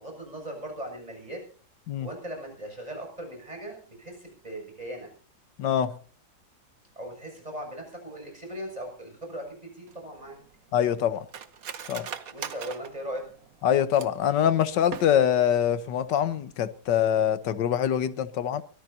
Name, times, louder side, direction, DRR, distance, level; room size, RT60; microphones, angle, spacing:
voice 1, 0.0-1.4 2.0-5.1 7.0-10.4 12.3-13.2, right 1 dB, 20° right, 7.0 m, -39 dB
voice 2, 5.6-5.9 10.7-11.3 11.9-12.1 13.6-18.6, left 9 dB, 90° left, 1.6 m, -24 dB
Cutlery silverware, 9.9-14.3 14.8-15.5 15.8-15.9 16.2-16.6 16.9-17.1, right 8 dB, 60° right, 1.4 m, -41 dB
23.5 x 18.0 x 2.8 m
omnidirectional pair, 1.8 m